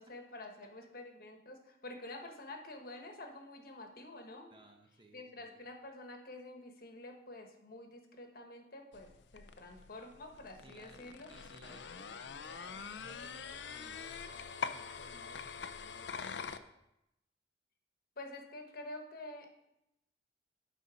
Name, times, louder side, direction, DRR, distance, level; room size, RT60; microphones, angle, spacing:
voice 1, 0.0-4.5 5.1-11.3 18.2-19.5, left 2 dB, 55° left, 4 dB, 1.2 m, -48 dB
voice 2, 4.5-5.6 10.6-16.5, right 1 dB, 25° right, 3 dB, 0.9 m, -59 dB
sound 1, 8.9-16.6, left 6 dB, 80° left, 0.5 m, -44 dB
11.5 x 4.2 x 5.0 m, 0.86 s
head